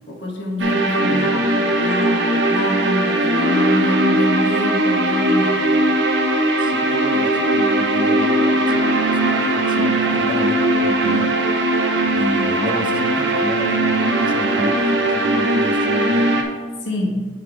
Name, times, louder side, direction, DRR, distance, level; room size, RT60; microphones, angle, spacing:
voice 1, 0.1-5.8 12.0-12.1 16.8-17.2, left 1 dB, 80° left, -1 dB, 1.5 m, -26 dB
sound 1, 0.6-16.4, right 1 dB, 70° right, 0.8 m, -19 dB
voice 2, 1.0-1.5 6.6-11.4 12.1-16.5, equal, 25° right, 7 dB, 0.5 m, -30 dB
7.3 x 4.0 x 4.8 m, 1.5 s
head